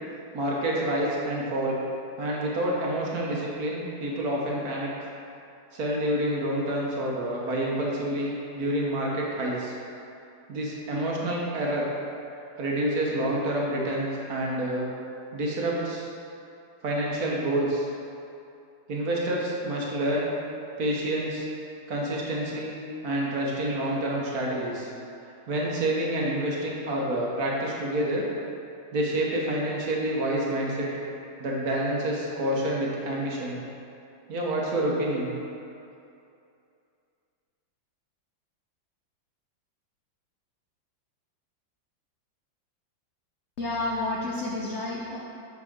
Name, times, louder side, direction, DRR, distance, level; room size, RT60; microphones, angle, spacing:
voice 1, 0.3-1.8 2.2-5.1 5.7-9.8 10.5-11.9 12.6-14.9 15.3-16.1 16.8-17.9 18.9-20.3 20.8-21.5 21.9-22.7 23.0-24.9 25.5-28.3 28.9-30.9 31.4-33.6 34.3-35.3, right 1 dB, 55° right, -4 dB, 1.4 m, -28 dB
voice 2, 43.6-45.2, left 2 dB, 75° left, -3 dB, 0.6 m, -30 dB
7.8 x 6.6 x 3.7 m, 2.6 s
omnidirectional pair, 2.1 m